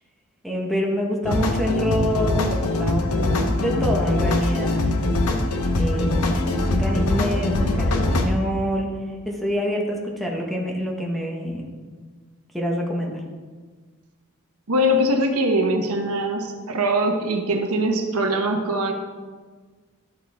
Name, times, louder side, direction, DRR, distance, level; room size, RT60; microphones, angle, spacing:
voice 1, 0.4-4.9 5.7-11.7 12.5-13.2, equal, ahead, -1 dB, 1.3 m, -26 dB
sound 1, 1.2-8.3, left 2 dB, 85° left, 0.9 m, -22 dB
voice 2, 14.7-18.9, right 1 dB, 85° right, 4 dB, 1.1 m, -22 dB
11.5 x 7.1 x 3.6 m, 1.5 s
head